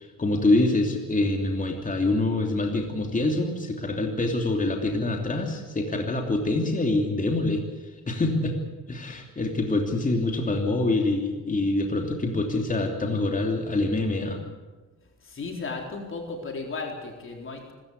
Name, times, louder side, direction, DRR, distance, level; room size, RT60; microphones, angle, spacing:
voice 1, 0.0-7.6 8.1-8.5 8.9-14.4, left 2 dB, 25° left, 3 dB, 3.0 m, -25 dB
voice 2, 15.2-17.7, left 3 dB, 45° left, 2 dB, 4.0 m, -35 dB
25.0 x 14.5 x 8.4 m, 1.2 s
cardioid pair, 90°, 30 cm